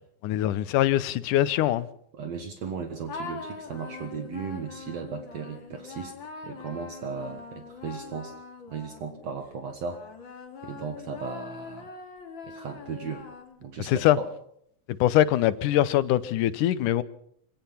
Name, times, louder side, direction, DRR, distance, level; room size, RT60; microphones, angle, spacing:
voice 1, 0.2-1.9 13.9-14.2 15.0-17.0, left 13 dB, 85° left, 2.5 m, -23 dB
voice 2, 2.1-6.2 6.4-8.4 8.7-10.0 10.6-11.9 12.5-13.3 13.6-14.3, right 5 dB, 60° right, 2.6 m, -36 dB
sound 1, 3.1-9.3 9.9-13.8, left 4 dB, 40° left, 2.8 m, -42 dB
26.0 x 17.5 x 5.8 m
omnidirectional pair, 3.6 m